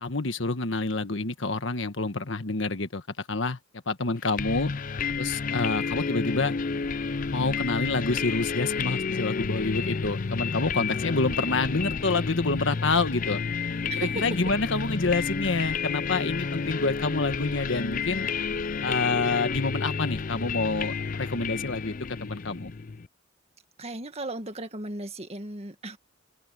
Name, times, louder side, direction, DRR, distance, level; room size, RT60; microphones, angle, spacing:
voice 1, 0.0-3.0 3.3-3.6 3.9-4.7 5.2-6.5 7.3-13.4 14.0-18.3 18.8-21.9 22.2-22.7, left 3 dB, 70° left, 1.5 m, -28 dB
sound 1, 4.4-23.1, left 5 dB, 40° left, 0.5 m, -30 dB
voice 2, 13.9-14.3 23.8-26.0, right 2 dB, 30° right, 1.9 m, -36 dB
open air
head